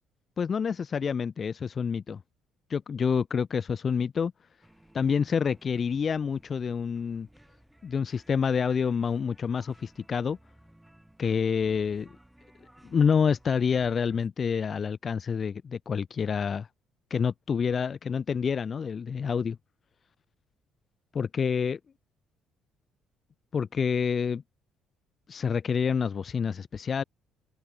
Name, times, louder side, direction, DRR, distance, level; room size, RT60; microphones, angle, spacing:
voice 1, 0.4-2.2 2.7-4.3 4.9-7.3 7.8-10.4 11.2-12.1 12.8-16.7 17.1-19.6 21.1-21.8 23.5-24.4 25.3-27.0, left 6 dB, 45° left, 0.3 m, -27 dB
sound 1, 4.6-14.3, right 1 dB, 5° right, 4.3 m, -58 dB
supercardioid pair, 75°, 0 cm